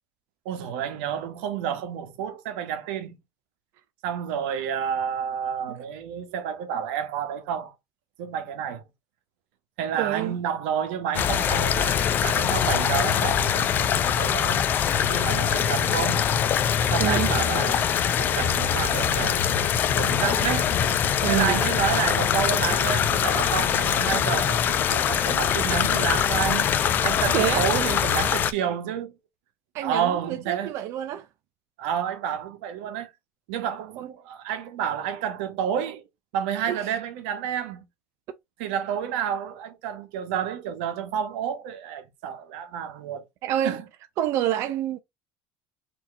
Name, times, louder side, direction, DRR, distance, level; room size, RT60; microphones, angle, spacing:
voice 1, 0.4-3.2 4.0-7.7 8.2-8.9 9.8-13.8 14.2-14.6 15.1-16.3 16.9-17.9 18.2-20.7 21.3-26.7 27.0-29.1 29.8-30.7 31.8-33.1 33.5-36.0 36.3-37.8 38.6-43.2 43.6-43.8, right 8 dB, 85° right, 1.1 m, -30 dB
voice 2, 10.0-10.4 17.0-17.3 21.2-21.6 27.3-27.7 29.7-31.3 34.0-34.1 36.7-36.9 43.4-43.8 44.2-45.0, right 11 dB, 50° right, 0.5 m, -27 dB
sound 1, 11.1-28.5, left 8 dB, 35° left, 0.5 m, -23 dB
4.4 x 2.9 x 4.1 m
cardioid pair, 150°, 6 cm